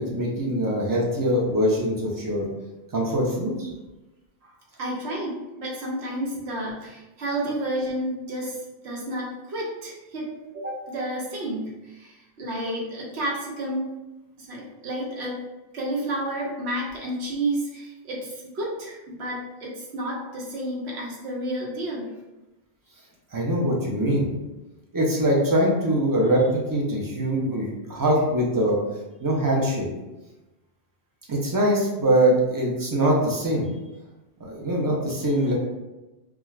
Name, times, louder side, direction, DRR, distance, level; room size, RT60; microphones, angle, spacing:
voice 1, 0.0-2.5 2.9-3.7 23.3-24.3 24.9-28.8 29.2-29.9 31.3-33.7 34.4-35.5, right 1 dB, 30° right, -3 dB, 0.4 m, -23 dB
voice 2, 4.8-13.9 14.4-15.4 15.7-22.1, right 1 dB, 85° right, -3 dB, 1.0 m, -31 dB
2.4 x 2.3 x 3.1 m, 1.1 s
omnidirectional pair, 1.1 m